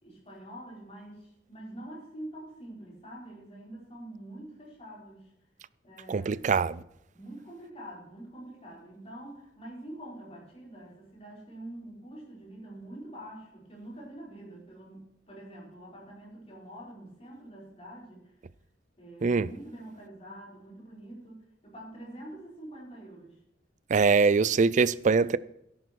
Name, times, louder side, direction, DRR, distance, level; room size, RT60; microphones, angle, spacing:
voice 1, 0.0-5.3 5.8-6.6 7.1-18.3 19.0-23.4, right 1 dB, 35° left, 5.1 m, -46 dB
voice 2, 6.1-6.8 19.2-19.5 23.9-25.4, right 4 dB, 40° right, 0.4 m, -23 dB
13.0 x 10.5 x 4.6 m
head